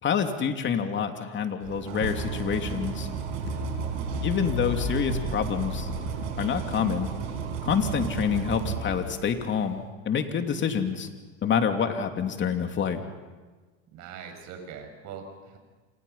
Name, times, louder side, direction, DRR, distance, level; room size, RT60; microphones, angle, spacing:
voice 1, 0.0-3.1 4.2-5.9 6.4-7.1 7.6-11.1 11.4-13.0, left 7 dB, 30° left, 6 dB, 2.9 m, -27 dB
sound 1, 1.6-9.6, right 6 dB, 75° right, 5.8 m, -33 dB
sound 2, 1.7-2.0 2.6-2.8 3.0-3.1 3.4-6.6, left 5 dB, 85° left, 5.5 m, -35 dB
voice 2, 3.9-4.2 13.9-15.6, right 6 dB, 50° right, 4 dB, 6.9 m, -42 dB
28.5 x 27.0 x 5.6 m, 1.3 s
supercardioid pair, 115°, 37 cm